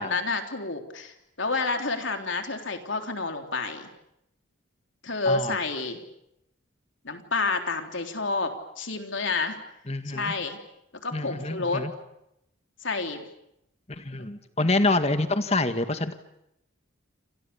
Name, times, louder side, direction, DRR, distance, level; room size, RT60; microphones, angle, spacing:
voice 1, 0.0-3.9 5.0-6.0 7.0-9.6 10.1-10.6 11.0-11.8 12.8-13.2, left 3 dB, 70° left, 5 dB, 3.6 m, -29 dB
voice 2, 5.2-5.6 9.9-10.3 11.1-11.9 13.9-16.1, left 2 dB, 30° left, 9 dB, 1.7 m, -26 dB
28.5 x 27.5 x 7.1 m, 0.82 s
head